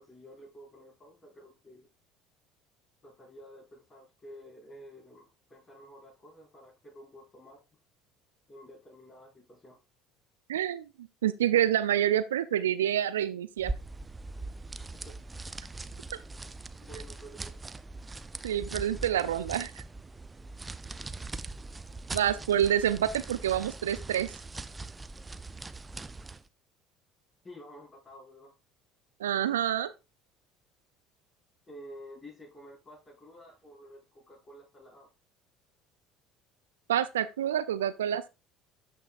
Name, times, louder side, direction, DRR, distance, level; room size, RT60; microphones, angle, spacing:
voice 1, 0.0-1.9 3.0-7.6 8.5-9.8 14.9-15.2 16.8-17.6 27.4-28.6 31.7-35.1, equal, 30° left, 5.5 m, -51 dB
voice 2, 10.5-10.9 11.2-13.7 18.4-19.8 22.1-24.3 29.2-29.9 36.9-38.3, right 10 dB, 80° right, 0.4 m, -27 dB
sound 1, 13.6-26.5, right 3 dB, 20° right, 0.6 m, -41 dB
12.0 x 6.0 x 2.5 m
hypercardioid pair, 65°, 0 cm